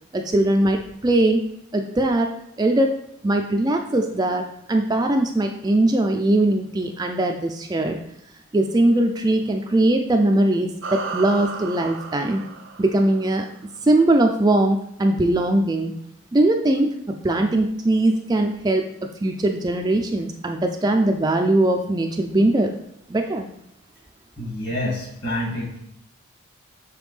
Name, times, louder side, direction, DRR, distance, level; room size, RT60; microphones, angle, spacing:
voice 1, 0.1-1.4 1.7-2.9 3.2-8.0 8.5-12.4 12.8-13.5 13.8-15.9 16.3-17.0 17.2-22.7 23.1-23.5, right 1 dB, 20° right, 3 dB, 0.3 m, -20 dB
sound 1, 10.8-13.6, right 4 dB, 70° right, 0.7 m, -34 dB
voice 2, 24.4-25.8, left 1 dB, 50° left, -3 dB, 2.1 m, -27 dB
6.2 x 5.1 x 3.2 m, 0.77 s
head